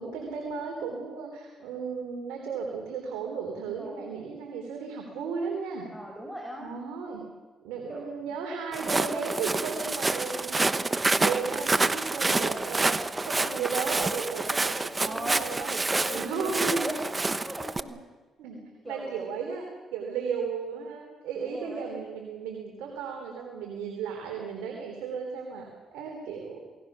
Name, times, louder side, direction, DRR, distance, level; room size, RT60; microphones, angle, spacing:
voice 1, 0.0-5.9 6.6-7.2 7.6-15.8 16.1-16.9 18.4-18.6 18.9-19.7 19.9-26.6, right 5 dB, 90° right, 1 dB, 3.5 m, -35 dB
voice 2, 3.8-4.3 5.9-6.7 7.9-8.1 15.0-18.1 18.5-19.2 21.4-21.9, equal, 5° right, 0 dB, 5.2 m, -39 dB
Walk footsteps, 8.7-17.8, right 3 dB, 25° right, 1.1 m, -28 dB
28.0 x 19.0 x 6.2 m, 1.3 s
supercardioid pair, 70°, 0 cm